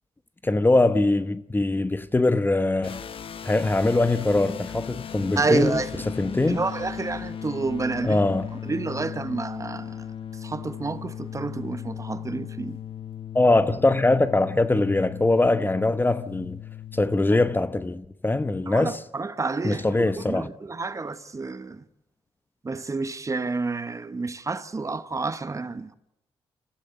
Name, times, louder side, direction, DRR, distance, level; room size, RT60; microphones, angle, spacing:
voice 1, 0.4-3.0 3.4-5.8 6.2-6.6 8.0-8.5 13.3-16.6 16.9-19.0 19.6-20.5, left 2 dB, 20° left, 1.0 m, -22 dB
sound 1, 2.8-17.2, left 9 dB, 60° left, 1.3 m, -37 dB
voice 2, 5.4-6.0 6.5-8.2 8.6-10.1 10.3-12.8 18.7-21.8 22.6-25.9, right 3 dB, 30° right, 1.2 m, -29 dB
28.5 x 14.5 x 8.0 m
cardioid pair, 75°, 10 cm